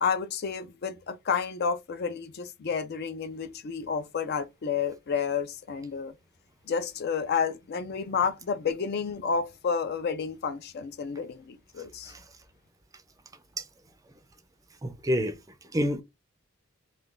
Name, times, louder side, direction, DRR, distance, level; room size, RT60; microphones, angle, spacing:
voice 1, 0.0-6.1 6.7-12.1, left 6 dB, 55° left, 0.4 m, -30 dB
voice 2, 14.8-15.4 15.7-16.0, equal, 15° right, 0.4 m, -27 dB
2.4 x 2.3 x 3.7 m
head